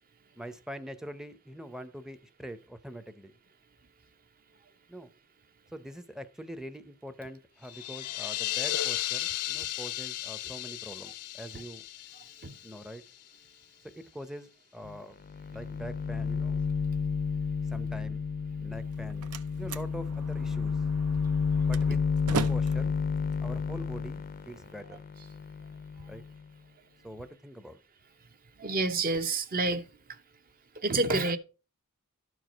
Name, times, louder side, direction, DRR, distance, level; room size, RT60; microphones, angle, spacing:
voice 1, 0.3-3.4 4.9-5.1 5.7-11.9 12.6-13.0 14.0-15.2 15.5-16.6 17.6-18.2 18.6-19.3 19.6-20.8 21.6-22.9 23.4-25.0 26.1-26.2 27.0-27.8, equal, ahead, 0.6 m, -43 dB
sound 1, 7.6-13.3, left 14 dB, 90° left, 0.5 m, -35 dB
sound 2, 14.8-15.0 15.2-26.4, left 5 dB, 40° left, 0.5 m, -31 dB
Slam, 18.7-24.7, right 5 dB, 75° right, 0.7 m, -40 dB
voice 2, 28.6-30.2 30.8-31.4, right 2 dB, 40° right, 0.8 m, -29 dB
12.5 x 4.7 x 5.1 m
head